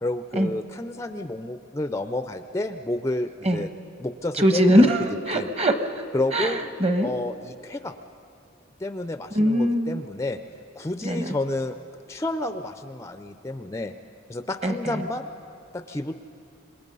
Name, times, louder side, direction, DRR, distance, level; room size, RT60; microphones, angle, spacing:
voice 1, 0.0-3.7 4.0-4.9 5.3-5.5 6.1-6.6 7.0-7.9 8.8-10.4 10.8-11.8 12.1-13.9 14.3-15.3 15.7-16.1, left 2 dB, 15° left, 9 dB, 0.4 m, -30 dB
voice 2, 4.4-6.0 6.3-7.1 9.3-9.9 11.0-11.3 14.6-15.0, equal, 30° right, 7 dB, 1.1 m, -22 dB
27.0 x 20.5 x 5.4 m, 2.6 s
head